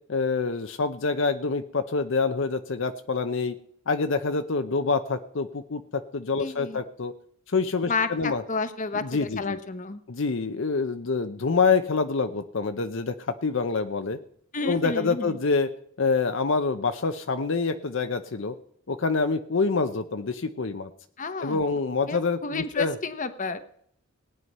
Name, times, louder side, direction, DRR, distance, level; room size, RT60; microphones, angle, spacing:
voice 1, 0.1-3.5 3.9-7.1 7.5-8.4 8.9-9.6 10.1-14.2 14.6-15.7 16.0-18.5 18.9-20.9 21.4-22.9, left 4 dB, 65° left, 9 dB, 0.7 m, -26 dB
voice 2, 6.4-6.8 7.9-10.0 14.5-15.4 21.2-21.6 22.1-23.6, left 3 dB, 40° left, 11 dB, 1.0 m, -31 dB
18.0 x 9.4 x 5.5 m, 0.66 s
head